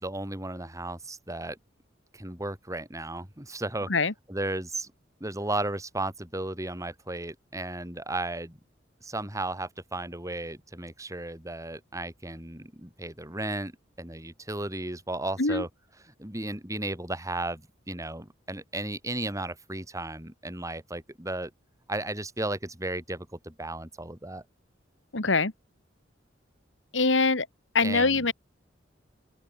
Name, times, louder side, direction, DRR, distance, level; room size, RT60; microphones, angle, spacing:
voice 1, 0.0-1.6 2.1-3.9 4.3-4.9 5.2-8.6 9.0-13.7 14.0-15.7 16.2-21.5 21.9-24.4 27.8-28.3, right 2 dB, 15° right, 4.4 m, -34 dB
voice 2, 25.1-25.5 26.9-27.5 27.7-28.3, left 3 dB, 80° left, 2.2 m, -23 dB
open air
head